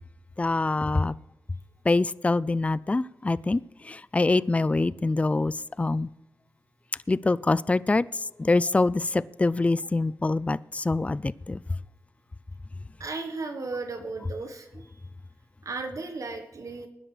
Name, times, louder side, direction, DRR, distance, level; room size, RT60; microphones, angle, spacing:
voice 1, 0.4-1.1 1.9-3.6 3.9-5.5 5.8-6.1 7.1-8.0 8.4-11.6, left 3 dB, 20° left, 0.3 m, -24 dB
voice 2, 13.0-15.0 15.6-16.9, right 3 dB, 60° right, 1.3 m, -35 dB
20.0 x 10.0 x 3.3 m
cardioid pair, 60°, 6 cm